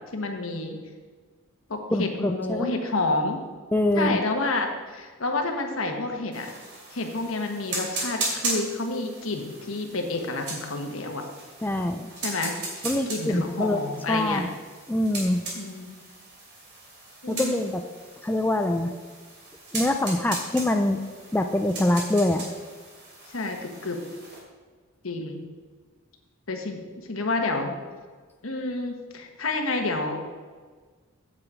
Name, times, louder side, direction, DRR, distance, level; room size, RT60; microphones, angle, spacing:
voice 1, 0.1-0.8 1.7-3.4 3.9-6.5 6.9-11.2 12.2-14.4 15.5-15.9 17.2-17.6 23.3-24.0 25.0-25.4 26.5-27.8 28.4-30.1, left 2 dB, 75° left, 4 dB, 1.3 m, -29 dB
voice 2, 1.9-2.7 3.7-4.2 11.6-12.1 12.8-13.8 14.1-14.5 14.9-15.4 17.3-17.8 18.2-18.9 19.7-21.0 21.3-22.5, left 1 dB, 10° left, 5 dB, 0.3 m, -24 dB
sound 1, 6.3-24.4, right 2 dB, 55° right, 3.0 m, -37 dB
8.4 x 7.7 x 4.8 m, 1.5 s
head